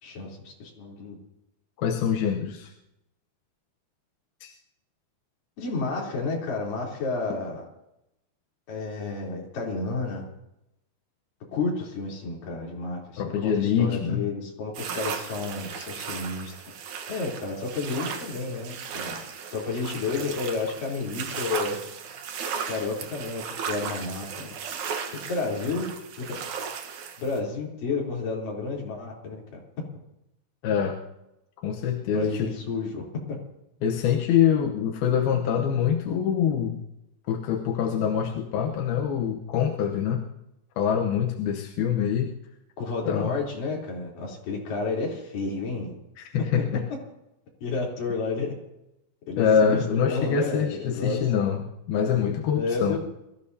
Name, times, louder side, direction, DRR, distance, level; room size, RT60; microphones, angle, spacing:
voice 1, 0.0-1.2 5.6-7.6 8.7-10.3 11.5-16.5 17.1-19.2 19.5-21.8 22.7-24.5 25.3-25.9 26.2-26.4 27.2-29.6 32.1-33.0 42.8-45.9 47.6-48.5 49.3-51.2 52.6-53.0, left 3 dB, 65° left, -3 dB, 5.1 m, -31 dB
voice 2, 1.8-2.7 4.4-4.5 13.2-14.3 16.5-16.6 30.6-31.0 31.6-32.5 33.8-36.8 37.3-40.2 40.8-42.3 43.0-43.3 46.2-46.8 49.4-53.0, left 8 dB, 90° left, 2 dB, 2.9 m, -25 dB
sound 1, 14.7-27.4, right 6 dB, 65° right, 2.4 m, -36 dB
23.5 x 14.5 x 2.8 m, 0.86 s
omnidirectional pair, 4.2 m